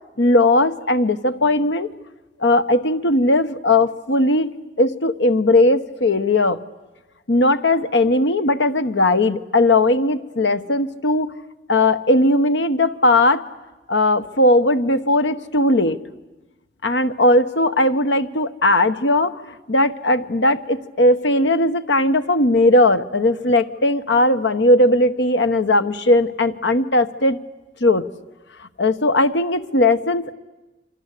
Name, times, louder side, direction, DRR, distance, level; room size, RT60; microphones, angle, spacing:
voice 1, 0.2-1.9 2.4-4.5 4.8-6.6 7.3-11.3 11.7-13.4 13.9-16.0 16.8-19.4 19.7-27.4 27.8-28.1 28.8-30.3, left 2 dB, 85° left, 11 dB, 1.2 m, -18 dB
28.5 x 24.5 x 8.4 m, 1.1 s
head